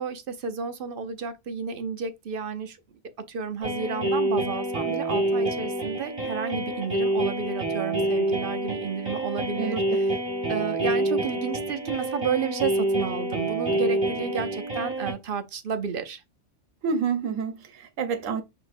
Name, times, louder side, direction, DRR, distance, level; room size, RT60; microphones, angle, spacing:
voice 1, 0.0-2.8 3.3-10.1 10.5-16.2, right 6 dB, 55° right, 0.8 m, -31 dB
sound 1, 3.6-15.1, right 1 dB, 25° right, 1.5 m, -27 dB
voice 2, 16.8-18.4, right 6 dB, 85° right, 1.2 m, -28 dB
5.9 x 2.9 x 2.6 m
omnidirectional pair, 1.3 m